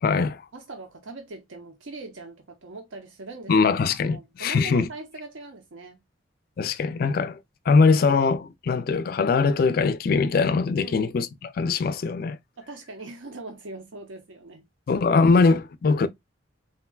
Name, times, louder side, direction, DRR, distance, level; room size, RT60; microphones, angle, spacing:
voice 1, 0.0-0.4 3.5-4.9 6.6-7.4 7.7-12.4 14.9-16.1, left 4 dB, 50° left, 0.3 m, -21 dB
voice 2, 0.5-3.5 4.0-6.0 10.8-11.0 12.6-14.6, right 3 dB, 80° right, 0.7 m, -41 dB
3.6 x 2.2 x 2.2 m
head